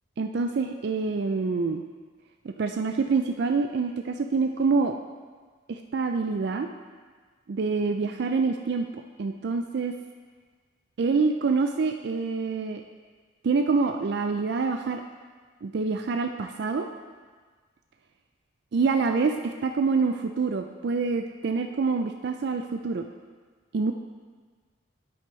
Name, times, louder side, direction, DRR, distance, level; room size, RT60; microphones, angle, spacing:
voice 1, 0.2-1.8 2.4-5.0 5.7-6.7 7.5-8.9 9.2-10.0 11.0-12.8 13.4-15.0 15.6-16.9 18.7-23.1 23.7-23.9, right 4 dB, 55° right, 5 dB, 0.4 m, -26 dB
9.4 x 8.0 x 3.2 m, 1.5 s
head